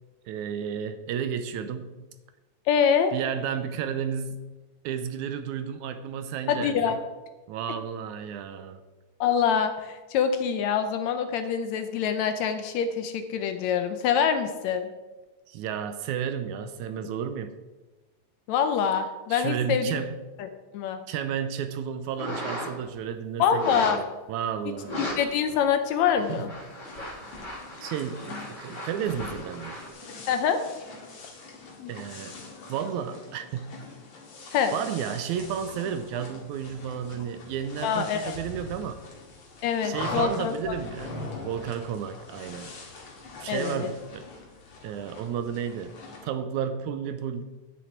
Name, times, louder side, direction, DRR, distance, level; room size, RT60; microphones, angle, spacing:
voice 1, 0.3-2.0 3.1-4.5 4.8-7.0 7.5-8.8 15.5-17.6 19.3-20.2 21.1-25.0 26.3-26.4 27.8-29.8 31.9-32.4 32.7-33.8 34.7-39.0 39.8-41.2 41.4-42.7 43.4-44.3 44.8-45.9 46.2-47.4, right 8 dB, 80° right, 10 dB, 2.0 m, -32 dB
voice 2, 2.7-3.1 6.5-7.0 9.2-14.9 18.5-20.0 20.4-20.5 20.7-21.0 23.4-24.0 25.0-26.5 30.3-30.6 31.8-31.9 34.5-34.8 37.8-38.4 39.6-40.5 43.5-43.9, left 7 dB, 75° left, 8 dB, 1.8 m, -25 dB
sound 1, 22.2-22.9 23.6-24.1 24.8-25.2 25.5-25.6 26.1-29.9, equal, 15° left, 2.0 m, -37 dB
sound 2, 26.8-46.3, left 3 dB, 55° left, 2.9 m, -42 dB
10.0 x 9.6 x 4.4 m, 1.2 s
omnidirectional pair, 3.5 m